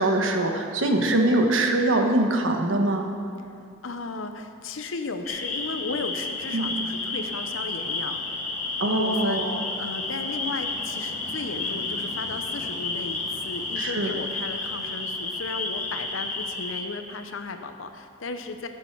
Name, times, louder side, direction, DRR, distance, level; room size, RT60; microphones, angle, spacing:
voice 1, 0.0-3.1 6.5-6.7 8.8-9.6 13.8-14.2, right 2 dB, 80° right, 3 dB, 1.1 m, -23 dB
voice 2, 3.8-8.4 8.9-18.7, left 3 dB, 90° left, 7 dB, 0.8 m, -35 dB
sound 1, 5.3-16.8, left 3 dB, 35° left, 1.0 m, -31 dB
16.0 x 6.7 x 4.6 m, 2.4 s
head